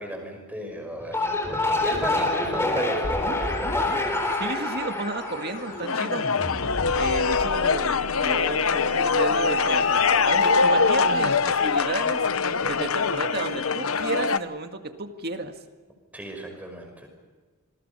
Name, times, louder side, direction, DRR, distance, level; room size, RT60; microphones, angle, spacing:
voice 1, 0.0-4.2 16.1-17.1, equal, 5° right, 3 dB, 5.6 m, -35 dB
sound 1, 1.0-6.3, left 2 dB, 10° left, 4.0 m, -27 dB
sound 2, 3.0-12.6, left 1 dB, 35° left, 4.0 m, -38 dB
voice 2, 4.3-6.3 7.0-12.2 12.5-15.5, right 2 dB, 45° right, 6 dB, 1.9 m, -32 dB
sound 3, 5.9-14.4, left 5 dB, 70° left, 0.9 m, -23 dB
28.0 x 22.0 x 5.7 m, 1.4 s
head